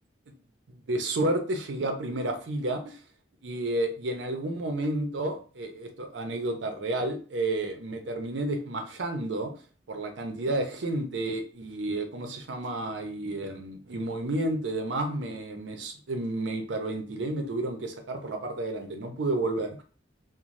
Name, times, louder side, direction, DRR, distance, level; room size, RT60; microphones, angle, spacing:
voice 1, 0.7-3.0 3.4-9.5 9.9-19.8, right 2 dB, 85° right, 5 dB, 0.6 m, -31 dB
2.6 x 2.1 x 3.1 m, 0.39 s
head